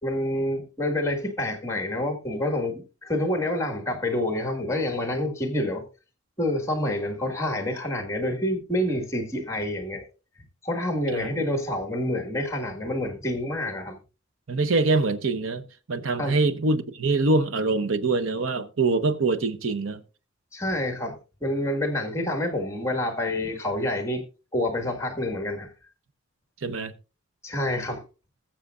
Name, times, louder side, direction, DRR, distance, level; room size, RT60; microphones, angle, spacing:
voice 1, 0.0-5.8 6.4-10.0 10.6-14.0 16.2-16.4 20.5-24.2 24.5-25.7 27.4-28.0, left 1 dB, 15° left, 1.8 m, -28 dB
voice 2, 14.5-20.0 26.6-26.9, right 3 dB, 85° right, 0.8 m, -24 dB
20.5 x 7.2 x 2.4 m
head